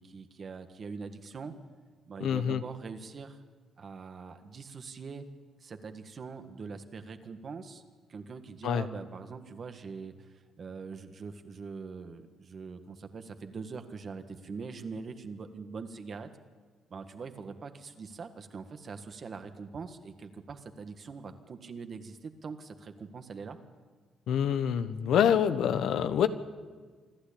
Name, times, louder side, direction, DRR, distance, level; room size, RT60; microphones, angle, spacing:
voice 1, 0.0-1.5 2.1-3.4 3.8-5.2 5.6-7.8 8.1-16.3 16.9-23.6, right 5 dB, 45° right, 8 dB, 1.7 m, -43 dB
voice 2, 2.2-2.6 8.6-8.8 24.3-26.3, left 8 dB, 75° left, 11 dB, 1.1 m, -26 dB
26.5 x 11.5 x 8.7 m, 1.5 s
cardioid pair, 90°, 0 cm